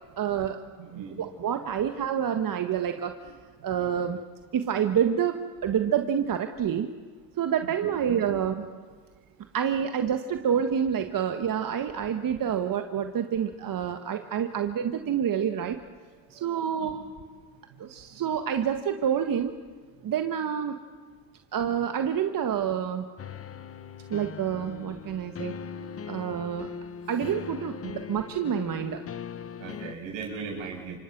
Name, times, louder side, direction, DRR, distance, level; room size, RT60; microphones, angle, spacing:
voice 1, 0.2-0.6 1.2-3.3 3.6-4.2 4.5-6.9 7.4-8.7 9.5-15.8 16.3-17.0 17.8-19.5 20.0-20.8 21.5-23.0 24.1-25.5 26.1-26.7 27.1-29.0, right 8 dB, 45° right, 7 dB, 1.6 m, -28 dB
voice 2, 0.8-1.2 7.8-7.9 16.3-16.5 16.8-16.9 17.7-17.8 29.6-31.0, right 5 dB, 75° right, 0 dB, 7.7 m, -38 dB
sound 1, 23.2-29.9, left 7 dB, 30° left, 1.0 m, -40 dB
28.5 x 25.0 x 6.1 m, 1.6 s
supercardioid pair, 85°, 46 cm